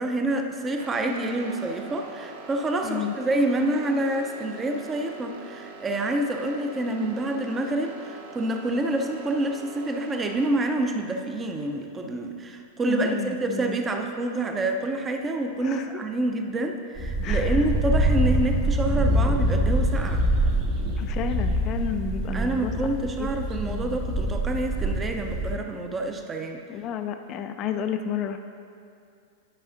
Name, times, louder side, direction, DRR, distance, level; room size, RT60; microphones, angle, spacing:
voice 1, 0.0-20.3 22.3-26.6, right 2 dB, 20° right, 4 dB, 0.6 m, -27 dB
sound 1, 0.8-10.5, right 4 dB, 55° right, 0.7 m, -44 dB
voice 2, 2.8-3.1 12.9-13.8 15.6-15.9 17.2-17.6 21.0-22.7 23.2-23.3 23.6-24.0 26.7-28.4, left 8 dB, 35° left, 7 dB, 0.4 m, -31 dB
sound 2, 17.0-25.5, right 1 dB, 35° right, 1.4 m, -25 dB
11.0 x 5.6 x 2.6 m, 2.4 s
figure-of-eight pair, 95°, 0 cm